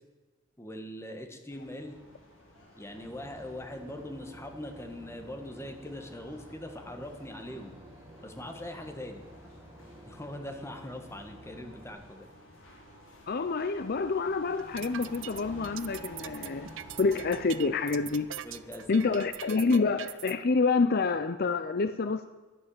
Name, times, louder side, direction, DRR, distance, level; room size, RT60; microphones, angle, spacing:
voice 1, 0.6-2.0 2.8-7.8 8.2-9.2 10.1-12.3 18.4-19.2, left 1 dB, 15° left, 5 dB, 1.6 m, -42 dB
sound 1, 1.5-19.6, equal, 80° left, 4.1 m, -52 dB
Boat Water vehicle / Engine, 2.9-11.9, equal, 15° right, 1.9 m, -52 dB
voice 2, 13.3-16.7 17.0-18.3 18.9-22.3, left 4 dB, 50° left, 12 dB, 0.5 m, -27 dB
sound 2, 14.6-20.3, right 12 dB, 65° right, 0.6 m, -42 dB
11.5 x 11.0 x 8.7 m, 1.3 s
head